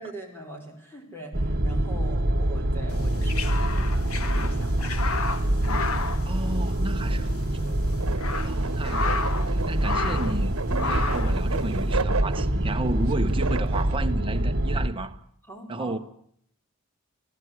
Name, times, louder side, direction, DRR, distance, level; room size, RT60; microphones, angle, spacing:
voice 1, 0.0-5.8 8.4-8.7 15.5-16.0, right 1 dB, 10° left, 4.6 m, -42 dB
sound 1, 1.3-14.9, right 1 dB, 45° right, 1.5 m, -25 dB
sound 2, 3.0-7.1 7.3-7.4 7.9-9.5 9.8-10.4 10.7-11.4, left 4 dB, 80° left, 1.7 m, -31 dB
voice 2, 6.2-7.3 7.6-7.8 8.4-15.2 15.7-16.0, right 2 dB, 25° right, 1.3 m, -33 dB
sound 3, 7.1-14.0, right 4 dB, 70° right, 1.3 m, -34 dB
26.5 x 16.5 x 9.7 m
head